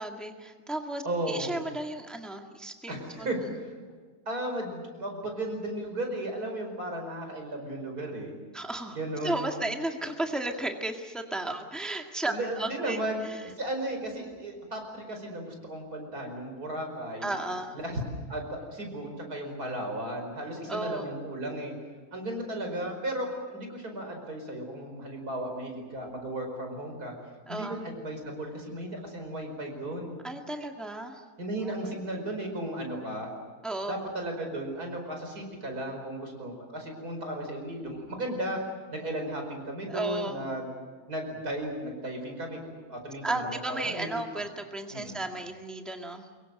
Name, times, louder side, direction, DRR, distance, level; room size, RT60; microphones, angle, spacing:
voice 1, 0.0-3.3 8.5-9.0 9.2-13.4 17.2-17.7 20.7-21.1 27.5-27.8 30.2-31.2 31.6-31.9 33.6-34.0 39.9-40.4 43.2-46.3, right 2 dB, ahead, 3 dB, 1.9 m, -34 dB
voice 2, 1.0-1.6 2.9-3.8 4.3-8.3 8.9-9.5 12.3-17.4 17.8-18.0 18.3-21.7 22.1-27.1 27.5-30.2 31.4-33.3 33.9-38.6 38.9-40.7 41.1-42.6 42.9-44.1 44.4-44.5 44.9-45.2, right 1 dB, 85° right, 3 dB, 5.5 m, -35 dB
25.0 x 22.5 x 7.8 m, 1.5 s
omnidirectional pair, 1.6 m